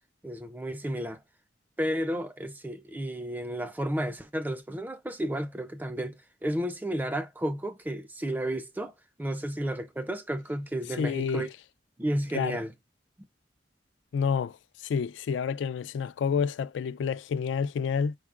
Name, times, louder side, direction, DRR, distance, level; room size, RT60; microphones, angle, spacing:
voice 1, 0.2-1.2 1.8-11.5 12.0-12.7, right 1 dB, 10° right, 0.3 m, -32 dB
voice 2, 11.0-11.5 12.3-12.6 14.1-14.6 14.8-18.2, left 6 dB, 90° left, 0.3 m, -29 dB
4.7 x 3.7 x 2.4 m
head